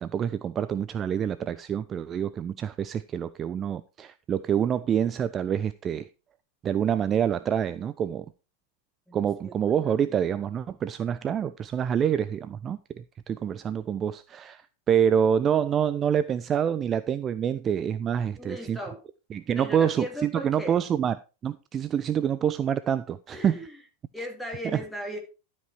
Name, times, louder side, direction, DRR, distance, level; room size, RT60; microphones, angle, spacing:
voice 1, 0.0-6.1 6.6-8.3 9.1-14.6 14.9-18.8 19.3-23.6 24.7-24.8, right 8 dB, 25° right, 0.4 m, -27 dB
voice 2, 9.1-10.1 18.4-19.0 19.5-20.8 23.3-23.8 24.1-25.2, equal, ahead, 2.4 m, -38 dB
12.0 x 5.3 x 4.4 m
figure-of-eight pair, 90°, 0 cm